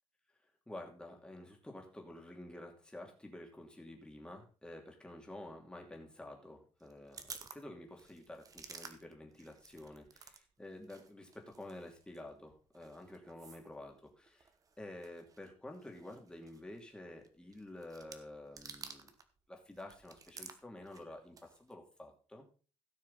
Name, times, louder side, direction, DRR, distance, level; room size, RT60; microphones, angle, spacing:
voice 1, 0.7-14.5 14.8-19.1 19.5-22.5, left 1 dB, 10° left, 1 dB, 2.8 m, -50 dB
sound 1, 6.8-10.4 10.7-19.3 19.6-21.7, right 5 dB, 35° right, 1.2 m, -54 dB
16.5 x 6.5 x 4.1 m, 0.36 s
cardioid pair, 140°, 10 cm